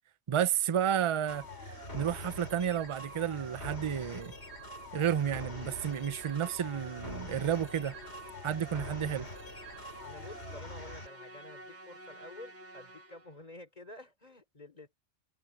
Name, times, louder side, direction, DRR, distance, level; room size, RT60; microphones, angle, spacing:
voice 1, 0.3-4.3 4.9-7.9 8.4-9.3, right 9 dB, 40° right, 0.5 m, -31 dB
sound 1, 1.3-11.1, left 1 dB, 70° left, 4.8 m, -44 dB
Musical instrument, 4.9-13.4, equal, 80° right, 2.3 m, -51 dB
voice 2, 10.0-14.9, left 2 dB, 35° left, 3.7 m, -50 dB
omnidirectional pair, 1.2 m